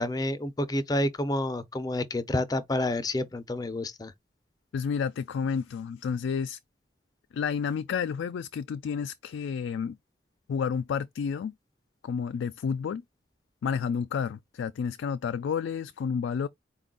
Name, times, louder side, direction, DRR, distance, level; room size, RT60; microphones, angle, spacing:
voice 1, 0.0-4.1, left 1 dB, 20° left, 0.5 m, -29 dB
voice 2, 4.7-6.6 7.3-10.0 10.5-11.5 12.0-13.0 13.6-16.5, left 6 dB, 80° left, 0.3 m, -30 dB
4.3 x 2.3 x 3.7 m
head